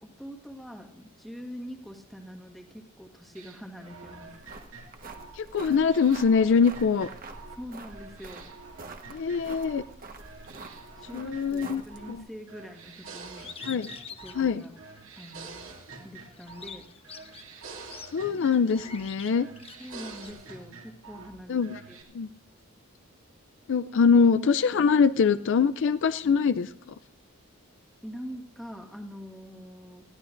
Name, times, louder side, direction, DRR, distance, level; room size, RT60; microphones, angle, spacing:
voice 1, 0.0-4.3 7.5-8.5 11.0-13.5 14.2-14.8 15.2-15.7 16.0-16.9 19.8-22.0 28.0-30.0, equal, ahead, 2 dB, 1.5 m, -44 dB
sound 1, 3.3-7.6 7.9-9.9 10.2-12.2 12.5-14.5 14.8-16.8 17.0-19.1 19.3-21.3 21.6-22.0, right 4 dB, 65° right, 2.5 m, -47 dB
sound 2, 4.3-12.2, right 3 dB, 40° right, 1.3 m, -46 dB
voice 2, 5.3-7.1 9.1-9.8 11.1-11.8 12.1-12.2 13.7-13.9 14.4-14.6 18.1-19.5 21.5-21.8 22.1-22.3 23.7-26.9, left 5 dB, 55° left, 13 dB, 0.4 m, -23 dB
Bird, 13.4-15.4 15.8-20.3, left 6 dB, 25° left, 1.0 m, -46 dB
20.5 x 14.5 x 2.5 m, 0.78 s
head